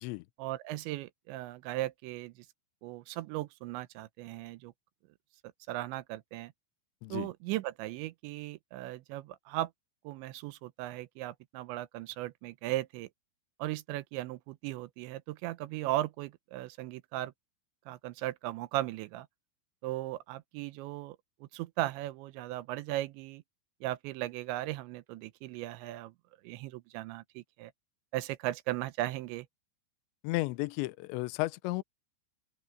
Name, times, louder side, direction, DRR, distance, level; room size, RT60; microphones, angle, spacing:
voice 1, 0.4-2.5 2.8-4.7 5.7-6.5 7.1-9.7 10.0-13.1 13.6-17.3 17.9-19.3 19.8-23.4 23.8-26.1 26.4-27.7 28.1-29.5, right 16 dB, 80° right, 2.8 m, -37 dB
voice 2, 30.2-31.8, left 21 dB, 80° left, 2.6 m, -33 dB
open air
omnidirectional pair, 5.8 m